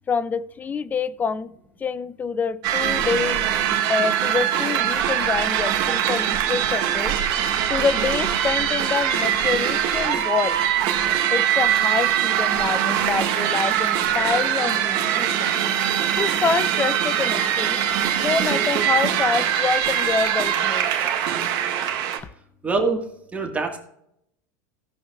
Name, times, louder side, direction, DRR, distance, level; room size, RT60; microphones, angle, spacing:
voice 1, 0.1-1.5 1.8-3.6 3.9-7.1 7.7-10.6 11.3-15.6 16.2-17.8 18.2-20.9, left 5 dB, 15° left, 17 dB, 0.4 m, -26 dB
sound 1, 2.6-22.2, right 10 dB, 45° right, 1.7 m, -22 dB
voice 2, 22.6-23.8, right 4 dB, 15° right, 1 dB, 1.5 m, -25 dB
19.0 x 7.0 x 2.3 m, 0.77 s
supercardioid pair, 135°, 10 cm